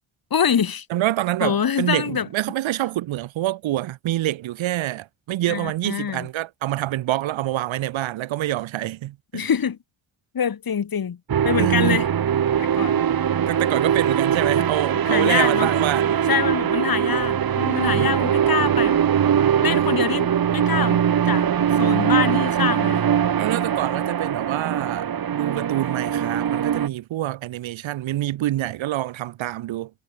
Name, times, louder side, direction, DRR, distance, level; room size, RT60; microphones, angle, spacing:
voice 1, 0.3-0.9 1.4-2.3 5.5-6.3 9.3-9.8 10.3-11.2 11.4-12.1 12.6-13.0 15.0-15.7 16.3-19.0 19.6-21.0 21.3-23.1, left 7 dB, 45° left, 7.0 m, -25 dB
voice 2, 0.9-9.5 11.6-12.0 13.5-16.2 17.9-18.1 19.6-20.0 23.4-29.9, right 14 dB, 70° right, 2.5 m, -26 dB
sound 1, 11.3-26.9, right 9 dB, 50° right, 2.3 m, -21 dB
supercardioid pair, 75°, 47 cm